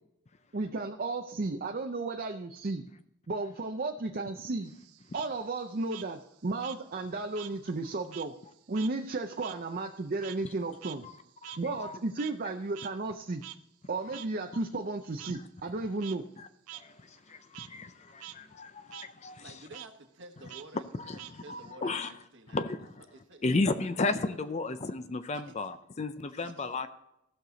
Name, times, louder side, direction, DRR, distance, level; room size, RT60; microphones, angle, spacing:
voice 1, 0.5-2.8 3.3-4.7 5.1-8.3 8.7-11.0 11.6-13.4 13.9-16.2, right 3 dB, 40° right, 5 dB, 0.5 m, -34 dB
Frog, 4.6-7.6 7.9-12.5 12.7-12.9 13.4-13.6 14.1-14.3 15.2-15.3 15.8-16.2 16.7-16.8 17.2-17.7 18.1-18.3 18.6-19.1 19.7-19.9 20.5-21.7, right 15 dB, 90° right, 0.5 m, -47 dB
voice 2, 11.4-12.0 14.1-14.2 15.3-15.4 16.4-16.5 16.7-19.5 21.1-22.1 22.5-22.9 23.4-26.9, left 3 dB, 30° left, 11 dB, 0.5 m, -34 dB
voice 3, 19.4-22.6 23.1-24.4 25.3-25.7 26.3-26.8, right 2 dB, 55° right, 4 dB, 1.4 m, -51 dB
15.5 x 6.6 x 3.9 m, 0.82 s
head